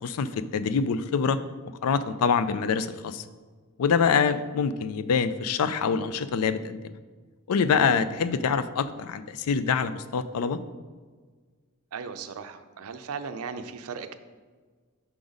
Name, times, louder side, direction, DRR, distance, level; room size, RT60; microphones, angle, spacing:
voice 1, 0.0-1.4 1.8-3.2 3.8-7.0 7.5-10.6, left 6 dB, 85° left, 13 dB, 0.4 m, -25 dB
voice 2, 11.9-14.1, right 5 dB, 75° right, 10 dB, 0.5 m, -37 dB
6.0 x 3.9 x 5.0 m, 1.5 s
head